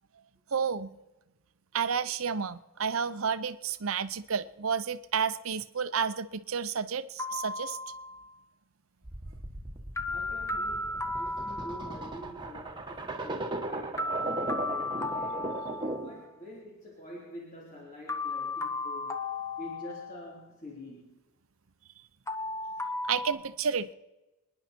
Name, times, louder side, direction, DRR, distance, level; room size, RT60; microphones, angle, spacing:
voice 1, 0.5-1.0 1.7-7.8 23.1-23.9, right 6 dB, 80° right, 13 dB, 0.8 m, -31 dB
sound 1, 7.2-8.3 10.0-12.3 14.0-16.3 18.1-20.4 22.3-23.3, left 2 dB, 15° left, 0.8 m, -35 dB
sound 2, 9.0-16.2, right 1 dB, 20° right, 1.5 m, -37 dB
voice 2, 10.1-15.6 16.0-19.2 19.6-21.2, left 1 dB, 40° left, -5 dB, 3.6 m, -46 dB
26.5 x 10.5 x 4.5 m, 1.1 s
head